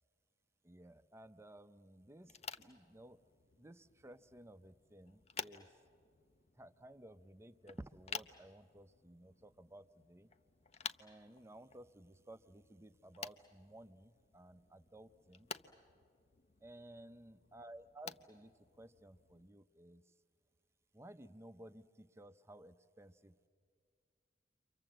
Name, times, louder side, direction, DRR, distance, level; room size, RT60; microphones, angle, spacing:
voice 1, 0.6-3.2 3.6-5.7 6.5-10.3 11.0-15.5 16.6-20.1 20.9-23.5, right 1 dB, 15° right, 12 dB, 0.6 m, -56 dB
sound 1, 2.2-19.5, left 6 dB, 35° left, 0.7 m, -53 dB
29.5 x 24.5 x 7.8 m, 2.2 s
head